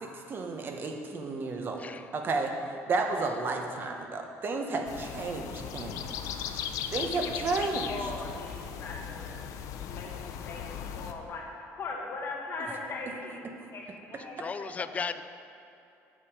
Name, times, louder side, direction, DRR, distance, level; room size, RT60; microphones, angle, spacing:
voice 1, 0.0-1.8 2.1-2.5 2.9-6.2 6.9-8.1, right 3 dB, 40° right, 3 dB, 1.0 m, -32 dB
sound 1, 4.9-11.1, left 8 dB, 75° left, 0.6 m, -38 dB
voice 2, 7.9-9.3 9.8-11.5 11.7-13.8 14.1-15.2, left 3 dB, 45° left, -1 dB, 1.6 m, -40 dB
voice 3, 14.4-15.2, left 5 dB, 25° left, 12 dB, 0.3 m, -35 dB
9.0 x 6.9 x 4.9 m, 2.7 s
cardioid pair, 125°, 6 cm